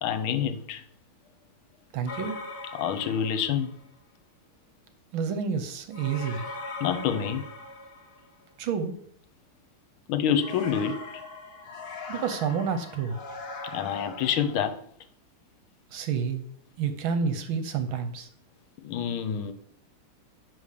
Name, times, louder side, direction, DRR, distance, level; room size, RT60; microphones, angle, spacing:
voice 1, 0.0-0.8 2.7-3.7 6.8-7.4 10.1-11.0 13.7-14.8 18.8-19.5, left 8 dB, 75° left, 1.5 m, -27 dB
voice 2, 1.9-2.4 5.1-6.5 8.6-8.9 12.1-13.2 15.9-16.4 16.8-18.3, right 6 dB, 70° right, 1.5 m, -29 dB
sound 1, 2.1-3.8 5.9-8.4 10.4-14.8, left 3 dB, 50° left, 0.7 m, -40 dB
10.5 x 3.5 x 6.6 m
omnidirectional pair, 2.4 m